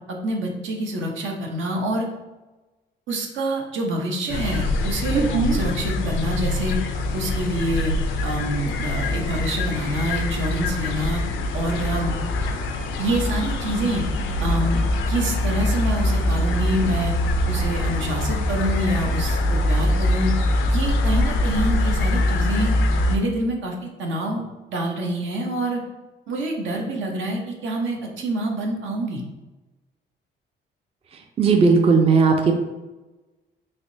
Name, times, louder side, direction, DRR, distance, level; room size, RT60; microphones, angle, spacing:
voice 1, 0.1-2.1 3.1-6.8 7.1-7.9 8.2-11.2 11.5-12.1 13.0-14.0 14.4-14.8 15.1-17.1 17.5-20.3 20.7-22.7 23.1-25.8 26.3-29.2, right 1 dB, 75° right, 1 dB, 0.7 m, -26 dB
sound 1, 4.3-23.2, left 1 dB, 85° left, 0.4 m, -23 dB
voice 2, 5.1-5.6 31.4-32.5, right 4 dB, 30° right, 3 dB, 0.4 m, -17 dB
3.4 x 2.9 x 2.6 m, 1.1 s
cardioid pair, 90°, 20 cm